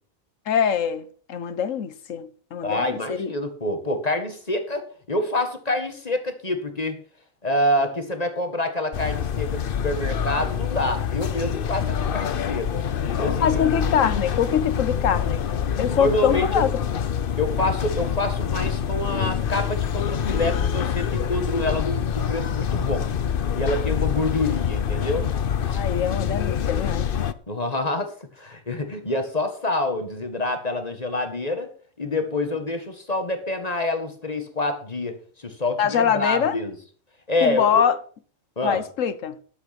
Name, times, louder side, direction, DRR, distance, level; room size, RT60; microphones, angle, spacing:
voice 1, 0.5-3.3 13.4-15.5 15.8-16.8 25.7-27.0 35.8-36.6 37.4-38.0 38.6-39.4, left 8 dB, 70° left, 1.4 m, -23 dB
voice 2, 2.6-7.0 7.4-12.7 13.2-13.6 15.9-16.6 17.4-23.1 23.5-25.3 25.7-25.8 27.5-31.7 32.0-36.8 37.3-37.9 38.6-38.9, left 1 dB, 30° left, 1.9 m, -27 dB
sound 1, 8.9-27.3, left 8 dB, 50° left, 0.8 m, -26 dB
12.0 x 8.0 x 6.0 m
omnidirectional pair, 1.4 m